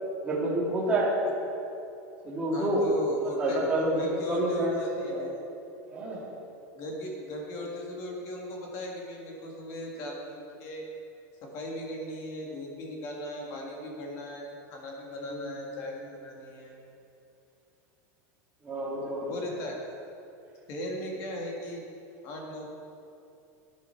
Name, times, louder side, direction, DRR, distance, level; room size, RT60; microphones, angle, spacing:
voice 1, 0.2-1.1 2.2-2.8 3.4-4.7 5.1-5.2 5.9-6.2 15.2-15.5 18.6-19.3, right 1 dB, 15° right, -5 dB, 2.1 m, -28 dB
voice 2, 2.5-3.6 3.9-5.3 6.7-10.9 11.4-16.8 19.3-19.9 20.7-21.8 22.2-22.7, equal, 35° left, -1 dB, 1.9 m, -38 dB
11.5 x 9.7 x 4.6 m, 2.7 s
supercardioid pair, 175°, 9 cm